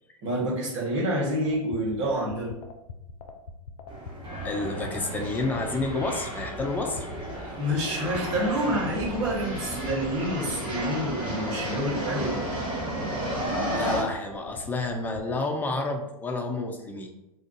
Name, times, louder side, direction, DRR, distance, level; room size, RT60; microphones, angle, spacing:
voice 1, 0.2-2.5 7.3-12.4, equal, 55° right, -4 dB, 1.3 m, -28 dB
sound 1, 1.5-15.2, left 5 dB, 75° left, 0.4 m, -42 dB
sound 2, 3.9-14.0, right 1 dB, 25° right, 1.5 m, -33 dB
voice 2, 4.4-7.1 13.7-17.1, left 2 dB, 10° left, 3 dB, 0.4 m, -30 dB
2.4 x 2.3 x 3.8 m, 0.91 s
hypercardioid pair, 100°, 18 cm